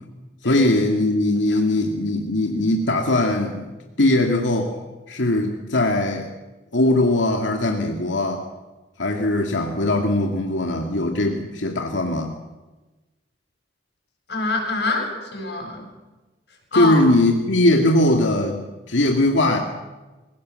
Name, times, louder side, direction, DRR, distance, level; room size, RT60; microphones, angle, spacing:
voice 1, 0.4-3.7 4.0-4.7 5.1-6.3 6.7-8.5 9.0-12.3 16.8-18.6 18.9-19.6, left 1 dB, 85° left, 1 dB, 2.3 m, -20 dB
voice 2, 14.3-15.9 16.7-17.0, left 3 dB, 60° left, 1 dB, 7.8 m, -25 dB
28.5 x 17.5 x 7.7 m, 1.2 s
head